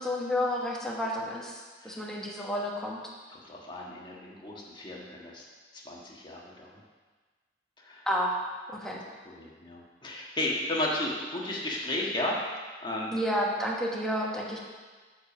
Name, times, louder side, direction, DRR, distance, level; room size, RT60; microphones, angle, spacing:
voice 1, 0.0-3.0 8.1-8.3 8.7-9.0 13.1-14.6, equal, 5° left, -3 dB, 1.2 m, -30 dB
voice 2, 3.3-5.4 5.7-6.8 7.8-8.1 8.8-8.9 9.2-12.4 12.8-13.1, left 1 dB, 25° left, -3 dB, 1.5 m, -34 dB
7.9 x 5.2 x 6.9 m, 1.4 s
head